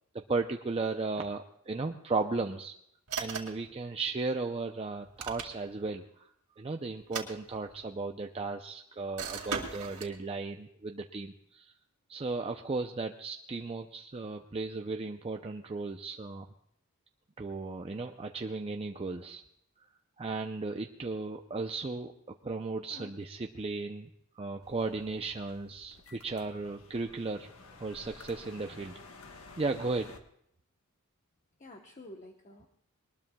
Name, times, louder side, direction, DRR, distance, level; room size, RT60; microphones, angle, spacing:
voice 1, 0.1-2.7 3.2-6.3 6.6-11.7 12.1-16.5 17.4-19.4 20.2-22.1 22.4-24.1 24.4-29.0 29.6-30.2, right 3 dB, 25° right, 4 dB, 0.5 m, -35 dB
sound 1, 3.1-3.7 5.0-5.8 7.0-7.9 9.2-10.2, right 5 dB, 80° right, 2.2 m, -38 dB
sound 2, 24.6-30.2, left 3 dB, 65° left, 1.3 m, -53 dB
voice 2, 31.6-32.7, left 1 dB, 35° left, 3 dB, 1.0 m, -49 dB
22.0 x 19.5 x 2.3 m, 0.72 s
head